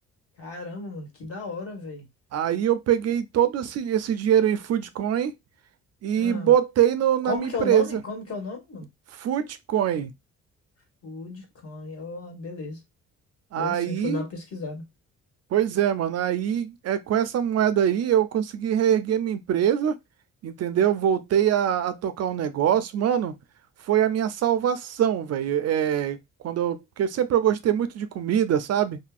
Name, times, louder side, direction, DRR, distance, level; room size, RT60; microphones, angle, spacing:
voice 1, 0.4-2.1 6.2-6.5 7.2-8.9 11.0-12.8 13.6-14.8, left 4 dB, 50° left, 1.5 m, -34 dB
voice 2, 2.3-5.3 6.0-8.0 9.1-10.1 13.5-14.2 15.5-20.0 20.4-23.3 23.8-26.2 26.4-29.0, right 10 dB, 55° right, 0.5 m, -23 dB
2.6 x 2.6 x 2.3 m
cardioid pair, 90°, 30 cm